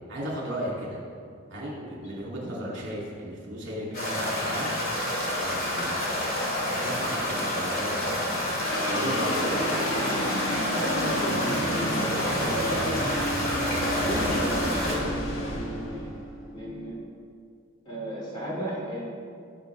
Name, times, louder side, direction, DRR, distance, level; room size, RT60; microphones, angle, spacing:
voice 1, 0.1-1.0 1.5-4.8 5.4-6.2 6.7-8.2 8.8-9.7, equal, 55° right, -4 dB, 2.8 m, -35 dB
sound 1, 3.9-15.0, left 1 dB, 45° left, 2.6 m, -29 dB
sound 2, 8.6-17.1, equal, 80° left, 1.4 m, -31 dB
voice 2, 11.0-12.0 12.4-13.0 13.9-16.2 16.5-17.0 17.8-19.1, equal, 25° left, -5 dB, 2.9 m, -34 dB
18.0 x 6.8 x 3.5 m, 2.3 s
head